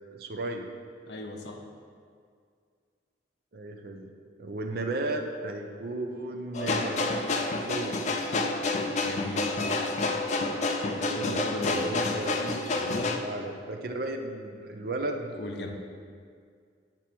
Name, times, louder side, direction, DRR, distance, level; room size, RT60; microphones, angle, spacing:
voice 1, 0.1-0.7 3.5-4.1 4.4-7.1 7.6-8.1 11.0-12.8 13.2-15.3, right 2 dB, 55° right, 3 dB, 0.5 m, -35 dB
voice 2, 1.1-1.7 8.5-9.6 11.2-12.0 12.7-13.2 15.3-15.7, left 2 dB, 70° left, 3 dB, 0.7 m, -37 dB
sound 1, 6.5-13.2, left 2 dB, 40° left, 0.4 m, -29 dB
8.3 x 3.0 x 6.0 m, 2.2 s
head